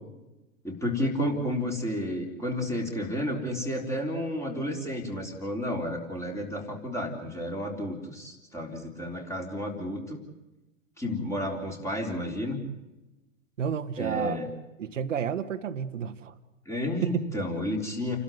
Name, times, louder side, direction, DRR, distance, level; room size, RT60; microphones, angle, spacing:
voice 1, 0.6-10.2 11.0-12.6 14.0-14.5 16.7-18.2, left 1 dB, 5° left, 2 dB, 3.8 m, -31 dB
voice 2, 13.6-14.4 14.8-16.3 17.0-17.2, right 7 dB, 70° right, 8 dB, 1.4 m, -30 dB
29.0 x 12.5 x 9.3 m, 1.0 s
hypercardioid pair, 125°, 39 cm